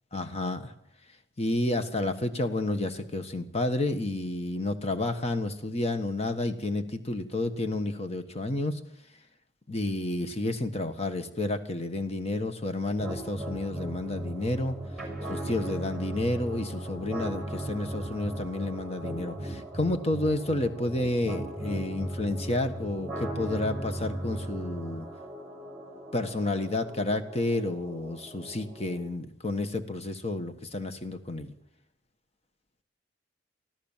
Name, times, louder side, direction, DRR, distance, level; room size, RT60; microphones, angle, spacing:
voice 1, 0.1-0.7 1.4-8.8 9.7-14.8 15.3-25.1 26.1-31.5, left 2 dB, 35° left, 8 dB, 1.5 m, -30 dB
sound 1, 13.0-29.0, right 1 dB, 5° right, 5.7 m, -37 dB
24.5 x 15.5 x 7.4 m, 0.75 s
head